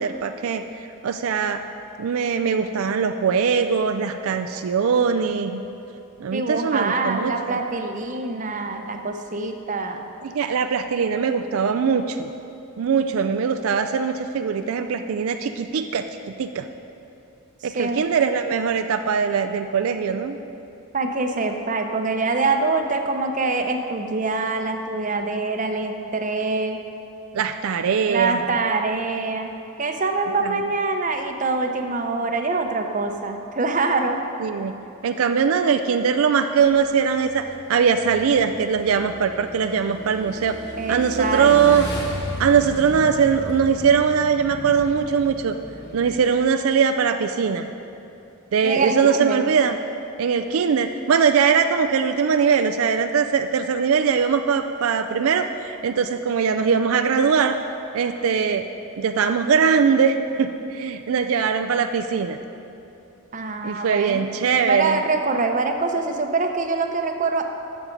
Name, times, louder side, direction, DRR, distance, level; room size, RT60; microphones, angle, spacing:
voice 1, 0.0-1.6 2.0-5.6 6.2-7.6 10.2-12.3 12.8-16.1 16.4-16.7 17.6-20.4 27.3-28.4 30.4-30.6 34.4-34.7 35.0-40.6 40.9-41.9 42.4-45.5 45.9-47.7 48.5-49.8 50.2-57.6 57.9-58.6 59.0-62.4 63.6-65.0, right 6 dB, 75° right, 7 dB, 0.4 m, -21 dB
voice 2, 6.3-10.1 17.6-18.1 20.9-26.8 28.1-29.5 29.8-34.2 40.8-41.8 48.6-49.5 63.3-64.2 64.7-67.4, right 3 dB, 35° right, 4 dB, 0.7 m, -25 dB
Motorcycle / Engine, 36.6-46.4, equal, 50° left, 1.2 m, -36 dB
12.0 x 7.1 x 5.2 m, 2.9 s
head